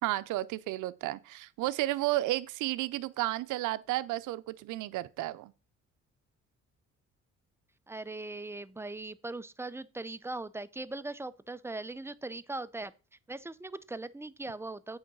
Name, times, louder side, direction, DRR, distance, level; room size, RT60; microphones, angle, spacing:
voice 1, 0.0-5.5, right 17 dB, 85° right, 0.5 m, -32 dB
voice 2, 7.9-12.9 13.3-15.0, right 2 dB, 10° right, 0.5 m, -40 dB
8.6 x 3.9 x 6.1 m
cardioid pair, 90°, 30 cm